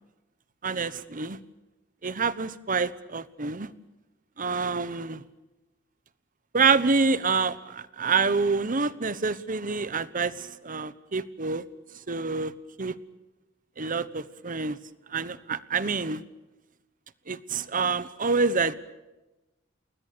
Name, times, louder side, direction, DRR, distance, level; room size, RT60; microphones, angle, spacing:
voice 1, 0.6-1.4 2.0-3.7 4.4-5.2 6.5-11.6 12.1-12.5 12.8-12.9 13.8-14.8 15.1-16.2 17.3-18.7, right 4 dB, 45° right, 16 dB, 1.1 m, -27 dB
29.5 x 20.5 x 6.9 m, 1.0 s
head